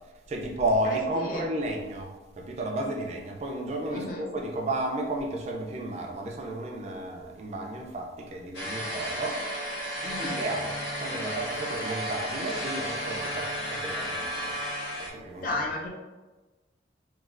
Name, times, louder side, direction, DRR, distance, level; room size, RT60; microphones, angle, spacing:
voice 1, 0.3-2.1 2.4-9.4 10.4-10.7 11.0-14.5 15.1-15.5, right 1 dB, 35° right, 0 dB, 0.3 m, -32 dB
voice 2, 0.9-1.5 3.9-4.2 10.0-10.4 15.4-15.9, left 2 dB, 45° left, -1 dB, 0.5 m, -33 dB
sound 1, 8.5-15.1, equal, 85° left, 0.7 m, -33 dB
3.0 x 2.3 x 2.4 m, 1.2 s
head